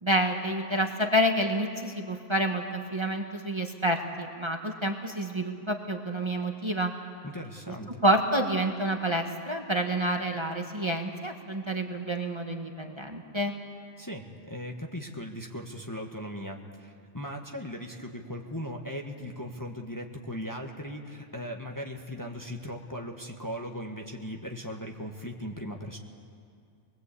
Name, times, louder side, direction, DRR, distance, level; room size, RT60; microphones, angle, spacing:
voice 1, 0.0-6.9 8.0-13.5, right 1 dB, 25° right, 3 dB, 1.4 m, -28 dB
voice 2, 7.2-7.9 14.0-26.0, equal, 15° left, 2 dB, 1.4 m, -38 dB
25.0 x 20.5 x 8.4 m, 2.4 s
omnidirectional pair, 1.2 m